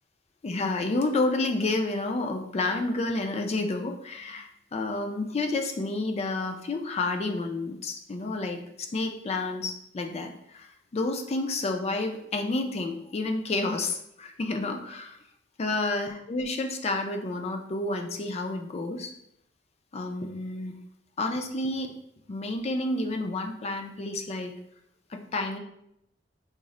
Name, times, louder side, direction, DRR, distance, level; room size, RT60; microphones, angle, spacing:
voice 1, 0.4-15.2 15.6-19.1 19.9-20.8 21.2-21.9 22.3-24.5 25.1-25.6, left 2 dB, 35° left, 5 dB, 0.4 m, -30 dB
3.6 x 2.0 x 4.1 m, 0.76 s
head